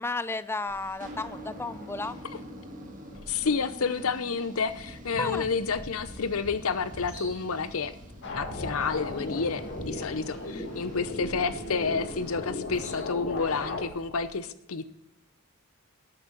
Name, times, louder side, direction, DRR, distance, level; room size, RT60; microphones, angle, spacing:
voice 1, 0.0-2.1 5.2-5.5, left 3 dB, 10° left, 15 dB, 0.4 m, -33 dB
sound 1, 0.7-12.4, equal, 40° right, 1.7 m, -46 dB
voice 2, 3.3-7.9 8.3-14.9, left 5 dB, 75° left, 13 dB, 0.7 m, -30 dB
sound 2, 4.5-14.3, equal, 40° left, 3.9 m, -46 dB
sound 3, 8.2-13.8, left 2 dB, 55° left, 2.0 m, -36 dB
13.0 x 8.6 x 4.1 m, 0.84 s
head